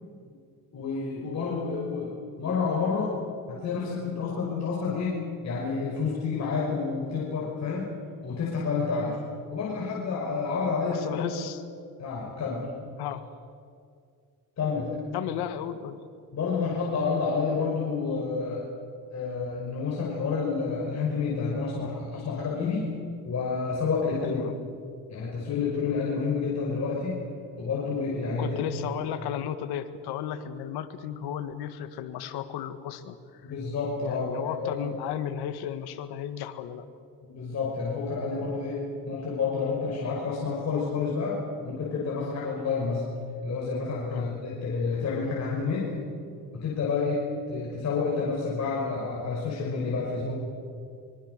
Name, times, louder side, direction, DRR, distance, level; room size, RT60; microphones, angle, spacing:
voice 1, 0.7-7.9 8.2-9.2 9.5-11.4 12.0-12.7 14.6-15.0 16.3-18.6 19.1-22.9 23.2-24.4 25.1-27.2 27.6-28.6 33.4-34.8 37.2-41.4 41.6-43.0 43.4-45.9 46.5-50.3, left 4 dB, 45° left, -4 dB, 5.8 m, -29 dB
voice 2, 10.9-11.6 13.0-13.2 15.1-16.0 24.2-24.5 28.4-33.4 34.0-36.8 44.1-44.3, left 10 dB, 80° left, 10 dB, 1.8 m, -34 dB
25.0 x 23.0 x 6.7 m, 2.3 s
cardioid pair, 115°, 38 cm